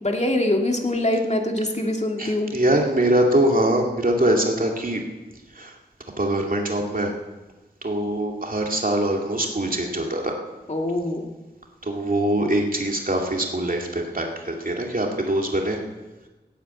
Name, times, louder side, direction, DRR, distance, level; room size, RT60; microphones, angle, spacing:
voice 1, 0.0-2.5 10.7-11.3, left 1 dB, 40° left, 2 dB, 2.3 m, -24 dB
voice 2, 2.2-5.0 5.5-5.7 6.2-7.1 7.8-10.3 11.8-15.8, right 1 dB, 50° right, 1 dB, 2.5 m, -23 dB
17.0 x 9.2 x 8.4 m, 1.2 s
wide cardioid pair, 65°, 18 cm